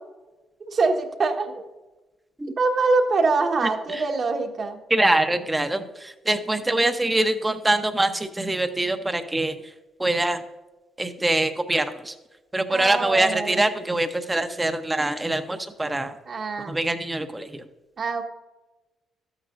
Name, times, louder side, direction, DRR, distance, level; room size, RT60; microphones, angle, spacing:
voice 1, 0.7-1.6 2.6-4.8 12.7-13.6 16.3-16.7 18.0-18.2, right 3 dB, 45° right, 3 dB, 1.5 m, -24 dB
voice 2, 4.9-9.5 10.0-10.4 11.0-12.1 12.5-16.1 16.7-17.6, right 1 dB, 15° right, 8 dB, 0.9 m, -24 dB
13.0 x 9.0 x 2.6 m, 1.1 s
cardioid pair, 90°, 0 cm